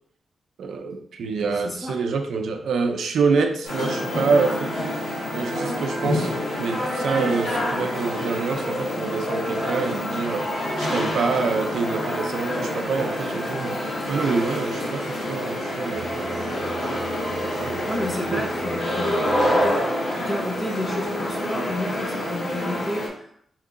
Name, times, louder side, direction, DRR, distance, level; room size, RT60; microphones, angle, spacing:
voice 1, 0.6-6.3 6.6-10.5 10.8-16.7 17.4-17.9 18.3-18.4, right 4 dB, 85° right, 6 dB, 0.5 m, -26 dB
voice 2, 1.6-2.0 17.9-19.8 20.2-23.3, left 1 dB, 20° left, 0 dB, 0.8 m, -31 dB
sound 1, 3.6-23.1, left 1 dB, 85° left, 1.6 m, -27 dB
sound 2, 15.9-19.7, right 2 dB, 65° left, 1.7 m, -36 dB
3.8 x 2.9 x 3.6 m, 0.66 s
wide cardioid pair, 130°, 0 cm